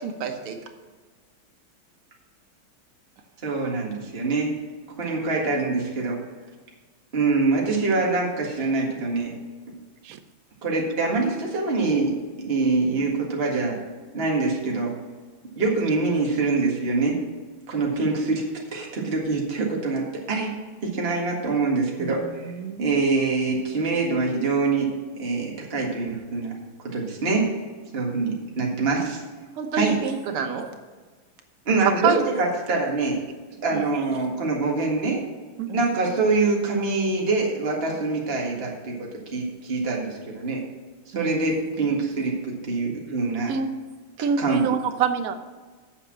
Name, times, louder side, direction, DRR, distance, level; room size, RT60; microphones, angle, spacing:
voice 1, 0.0-0.6 29.6-30.7 33.7-33.8 35.7-35.8 41.1-41.5, right 5 dB, 85° right, 5 dB, 2.0 m, -30 dB
voice 2, 3.4-4.5 5.0-6.2 7.1-9.3 10.6-13.8 14.1-14.9 15.5-17.2 17.7-18.4 18.7-20.5 20.8-22.5 22.8-26.5 26.8-27.5 27.9-29.2 29.7-30.0 31.7-33.2 33.6-35.2 35.7-40.6 41.1-43.5 44.4-44.6, right 3 dB, 30° right, -1 dB, 1.9 m, -24 dB
voice 3, 22.0-23.1 32.0-32.2 35.6-35.7 43.5-43.7 44.2-45.3, right 6 dB, 60° right, 9 dB, 0.9 m, -26 dB
8.4 x 6.7 x 7.4 m, 1.4 s
omnidirectional pair, 2.3 m